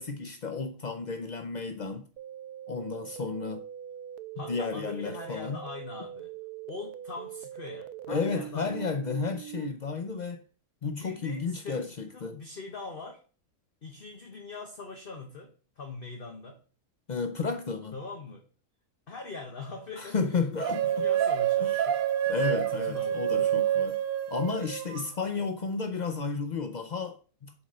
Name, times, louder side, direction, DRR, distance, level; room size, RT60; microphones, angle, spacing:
voice 1, 0.0-2.1 2.7-3.6 4.4-5.6 8.1-10.4 10.8-12.4 17.1-17.9 20.0-21.0 21.6-21.8 22.3-24.0 24.3-27.5, left 4 dB, 75° left, 0.4 m, -32 dB
sound 1, 2.2-9.7, right 11 dB, 75° right, 1.1 m, -42 dB
voice 2, 4.4-6.3 6.7-8.8 11.0-13.2 13.8-16.6 17.9-18.4 19.1-22.0 22.7-23.6, left 4 dB, 40° left, 1.1 m, -42 dB
sound 2, 20.6-25.1, right 10 dB, 90° right, 0.4 m, -27 dB
7.2 x 4.3 x 6.4 m
omnidirectional pair, 1.7 m